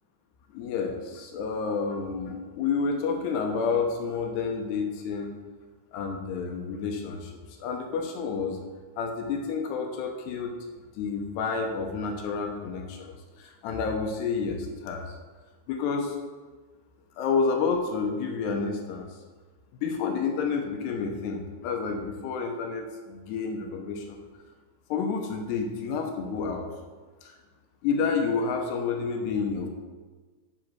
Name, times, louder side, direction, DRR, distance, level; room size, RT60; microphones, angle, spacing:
voice 1, 0.5-5.3 5.9-7.3 7.6-8.6 9.0-10.6 11.0-15.1 15.7-16.2 17.2-19.1 19.8-24.2 24.9-26.7 27.2-27.3 27.8-29.7, left 5 dB, 75° left, 4 dB, 2.8 m, -29 dB
7.7 x 7.5 x 6.2 m, 1.4 s
omnidirectional pair, 5.3 m